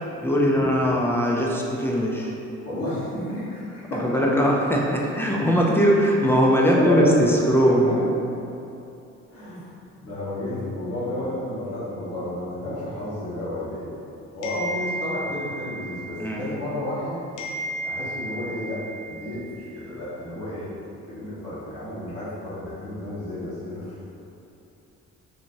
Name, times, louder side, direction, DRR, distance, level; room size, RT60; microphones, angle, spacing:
voice 1, 0.2-2.3 4.0-8.0 16.2-16.4, equal, 10° left, -3 dB, 0.4 m, -20 dB
voice 2, 2.6-4.2 6.7-7.2 7.6-7.9 9.3-9.6 10.0-13.9 14.3-17.2 17.8-23.9, left 1 dB, 50° left, -9 dB, 1.2 m, -31 dB
sound 1, 14.4-17.0 17.4-19.9, right 1 dB, 80° left, 0.5 m, -34 dB
2.8 x 2.7 x 2.6 m, 2.8 s
cardioid pair, 90°, 30 cm